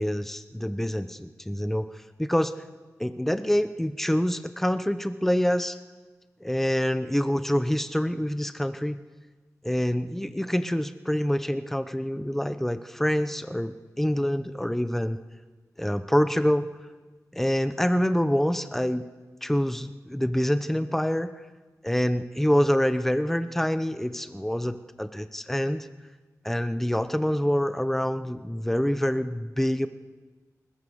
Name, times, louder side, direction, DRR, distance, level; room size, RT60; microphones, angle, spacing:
voice 1, 0.0-2.5 3.0-5.8 6.4-9.0 9.6-15.2 15.8-16.7 17.3-19.1 19.4-21.3 21.8-25.9 26.4-29.9, equal, 5° left, 11 dB, 0.9 m, -26 dB
20.5 x 20.0 x 6.5 m, 1.3 s
wide cardioid pair, 95°, 6 cm